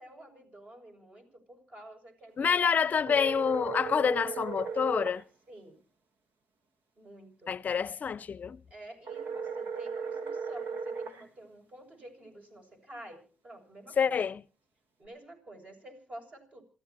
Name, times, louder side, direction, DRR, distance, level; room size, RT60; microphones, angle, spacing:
voice 1, 0.0-3.0 5.5-5.8 7.0-7.5 8.7-14.2 15.0-16.6, right 1 dB, 40° right, 7.5 m, -50 dB
voice 2, 2.4-5.2 7.5-8.6 14.0-14.4, left 6 dB, 50° left, 0.7 m, -27 dB
sound 1, 3.1-5.2 9.1-11.2, right 6 dB, 70° right, 2.2 m, -36 dB
28.0 x 15.0 x 3.0 m
hypercardioid pair, 50°, 4 cm